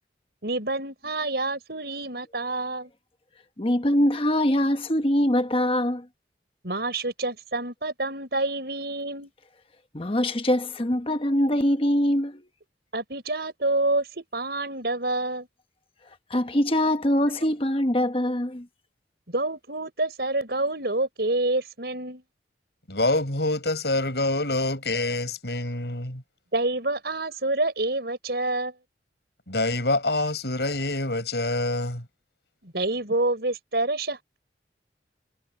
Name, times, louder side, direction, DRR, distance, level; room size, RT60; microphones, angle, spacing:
voice 1, 0.4-2.9 6.6-9.3 12.9-15.5 19.3-22.2 26.5-28.7 32.6-34.4, right 2 dB, 65° right, 6.1 m, -27 dB
voice 2, 3.6-6.1 9.9-12.4 16.3-18.7, left 1 dB, 30° left, 1.1 m, -23 dB
voice 3, 22.9-26.2 29.5-32.0, left 2 dB, 70° left, 7.3 m, -26 dB
head